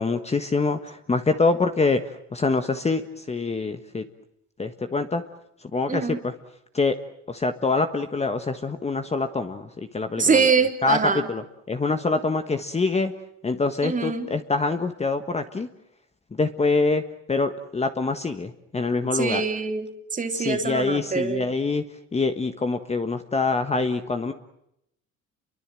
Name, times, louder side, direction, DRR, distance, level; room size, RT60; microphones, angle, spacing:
voice 1, 0.0-4.0 4.6-5.2 5.7-6.3 6.7-6.9 7.3-10.5 10.8-11.4 11.7-13.1 13.4-15.7 16.4-17.0 17.3-19.4 20.3-21.8 22.1-24.3, left 3 dB, 20° left, 8 dB, 1.5 m, -25 dB
voice 2, 5.9-6.2 10.2-11.3 13.8-14.3 19.1-21.5, right 5 dB, 25° right, 5 dB, 3.5 m, -24 dB
29.5 x 23.5 x 7.7 m, 0.79 s
cardioid pair, 120°, 32 cm